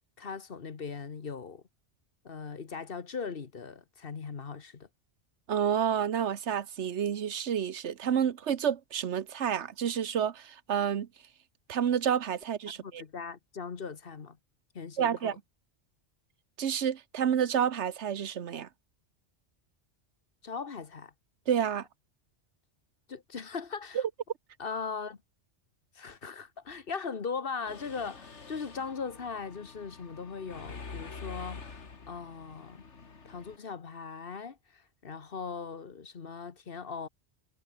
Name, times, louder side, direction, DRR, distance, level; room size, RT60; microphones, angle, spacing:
voice 1, 0.2-1.6 2.2-4.9 12.8-14.4 14.7-15.4 20.4-21.1 23.1-24.0 24.6-25.2 25.9-32.8 33.2-37.1, left 5 dB, 55° left, 1.4 m, -39 dB
voice 2, 5.5-11.1 11.7-13.0 15.0-15.3 16.6-18.7 21.5-21.8 23.9-24.0, right 8 dB, 80° right, 1.2 m, -29 dB
Mechanisms, 27.7-33.6, left 4 dB, 80° left, 2.4 m, -46 dB
omnidirectional pair, 1.2 m